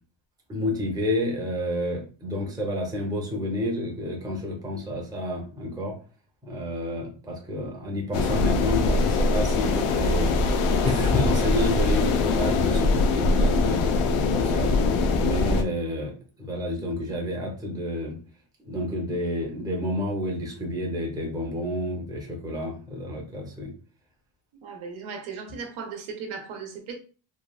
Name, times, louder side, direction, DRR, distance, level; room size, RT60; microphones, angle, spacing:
voice 1, 0.5-5.9 6.4-13.8 14.3-14.7 15.1-16.1 16.4-18.2 18.6-23.7, left 1 dB, 10° right, 0.6 m, -30 dB
sound 1, 8.1-15.6, left 3 dB, 90° left, 0.6 m, -22 dB
voice 2, 24.6-26.9, right 5 dB, 80° right, 0.9 m, -37 dB
3.2 x 2.3 x 2.3 m
cardioid pair, 145°, 49 cm